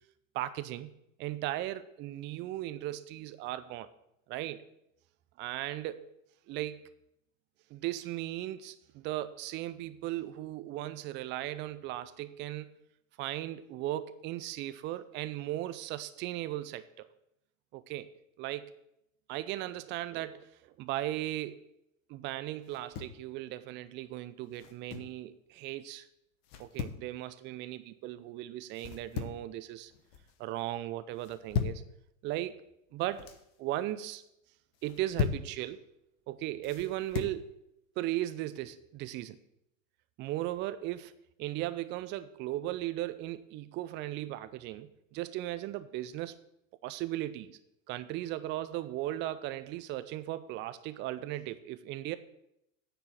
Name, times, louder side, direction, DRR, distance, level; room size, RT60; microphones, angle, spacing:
voice 1, 0.3-0.9 1.2-3.9 4.3-4.6 5.4-6.1 6.5-6.9 7.7-12.7 13.2-17.1 17.7-18.1 18.4-18.7 19.3-21.6 22.1-26.1 26.6-29.9 30.4-31.8 32.2-32.6 32.9-33.3 33.6-34.2 34.8-35.8 36.3-37.6 38.0-39.4 40.2-41.1 41.4-46.4 46.8-47.6 47.9-52.2, right 14 dB, 30° right, 13 dB, 0.5 m, -37 dB
sound 1, 22.7-23.2 24.5-25.2 26.4-27.0 28.7-29.5 29.9-30.3 31.2-31.9 32.9-33.4 34.7-35.5 36.6-37.4, left 7 dB, 50° left, 1.1 m, -37 dB
9.8 x 4.5 x 7.4 m, 0.81 s
figure-of-eight pair, 90°, 40 cm